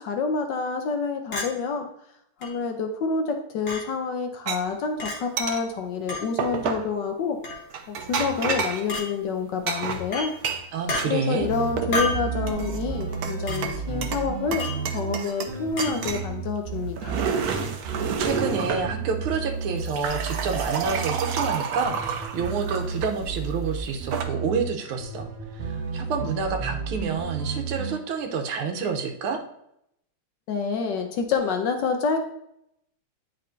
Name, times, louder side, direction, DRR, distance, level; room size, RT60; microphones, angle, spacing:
voice 1, 0.0-1.9 2.4-7.4 7.9-10.4 11.1-14.7 14.9-17.2 30.5-32.2, left 5 dB, 70° left, 4 dB, 1.2 m, -28 dB
Chink clink, 1.3-1.5 2.4-2.5 3.7-3.8 5.0-5.2 6.1-6.3 7.4-7.7 8.9-9.1 10.1-10.3 10.9-11.0 11.9-12.3 13.5-13.6 14.6-14.8 15.8-15.9, left 2 dB, 55° left, 1.7 m, -29 dB
sound 1, 4.5-4.6 5.4-5.6 6.4-6.9 7.7-8.9 9.7-11.1 11.5-12.1 12.5-13.3 13.6-14.3 14.5-15.5 15.8-16.3 16.8-18.9 19.6-23.1 23.9-24.2, right 6 dB, 70° right, 0.9 m, -29 dB
voice 2, 10.7-11.5 17.9-18.0 18.2-29.4, right 5 dB, 85° right, 4 dB, 1.7 m, -29 dB
sound 2, 11.4-21.4 21.8-24.6 25.0-28.0, right 5 dB, 40° right, 1.1 m, -32 dB
10.0 x 4.2 x 2.6 m, 0.76 s
omnidirectional pair, 2.3 m